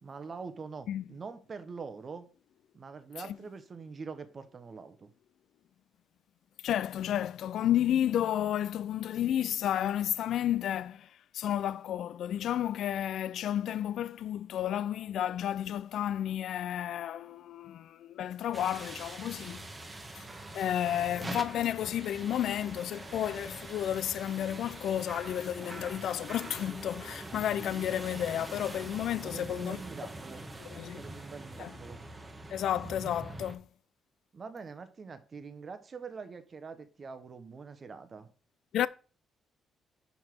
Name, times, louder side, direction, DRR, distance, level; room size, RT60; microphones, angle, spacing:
voice 1, 0.0-2.3 2.7-5.1 29.2-30.4 31.0-32.0 34.3-38.3, right 5 dB, 40° right, 0.9 m, -44 dB
voice 2, 6.6-19.6 20.2-20.3 20.5-29.8 30.7-31.0 31.6-31.7 32.5-33.7 38.7-38.9, left 11 dB, 75° left, 0.3 m, -32 dB
sound 1, 18.5-33.5, right 2 dB, 20° right, 1.1 m, -44 dB
5.3 x 4.8 x 6.0 m
cardioid pair, 90°, 0 cm